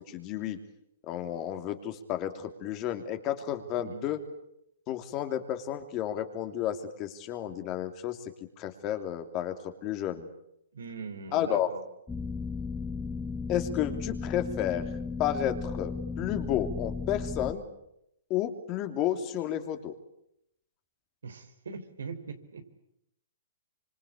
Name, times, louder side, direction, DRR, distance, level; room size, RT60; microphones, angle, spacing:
voice 1, 0.1-0.6 1.0-4.2 4.9-8.2 8.6-9.5 9.8-10.3 11.3-11.7 13.5-14.9 15.2-17.6 18.3-19.9, left 11 dB, 30° left, 7 dB, 3.0 m, -31 dB
voice 2, 3.8-4.1 10.7-11.8 21.2-22.6, right 4 dB, 90° right, 7 dB, 4.5 m, -41 dB
sound 1, 12.1-17.5, left 4 dB, 10° left, 1.4 m, -35 dB
26.0 x 25.5 x 8.6 m, 0.79 s
hypercardioid pair, 145°, 0 cm